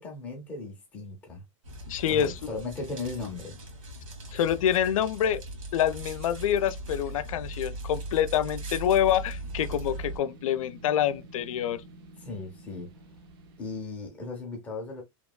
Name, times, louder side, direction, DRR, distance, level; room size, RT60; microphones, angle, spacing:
voice 1, 0.0-1.4 2.1-3.6 12.2-12.9 13.6-15.0, left 3 dB, 10° left, 0.5 m, -37 dB
sound 1, 1.6-10.2, right 2 dB, 85° right, 1.5 m, -39 dB
voice 2, 1.9-2.3 4.3-5.4 5.7-11.8, left 10 dB, 90° left, 0.4 m, -26 dB
sound 2, 7.5-13.8, right 2 dB, 45° right, 0.4 m, -51 dB
2.9 x 2.3 x 2.2 m
supercardioid pair, 180°, 17 cm